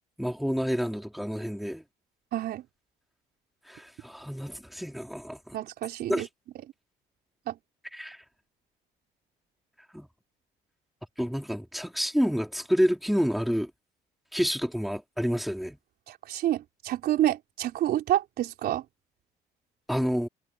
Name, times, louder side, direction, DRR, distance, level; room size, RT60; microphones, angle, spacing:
voice 1, 0.2-1.8 3.7-5.6 6.1-6.3 7.9-8.2 9.9-10.1 11.2-13.7 14.3-15.8 19.9-20.3, equal, ahead, 4.9 m, -29 dB
voice 2, 2.3-2.6 5.5-6.3 7.5-7.6 16.1-18.8, right 12 dB, 70° right, 3.7 m, -28 dB
cardioid pair, 110°, 17 cm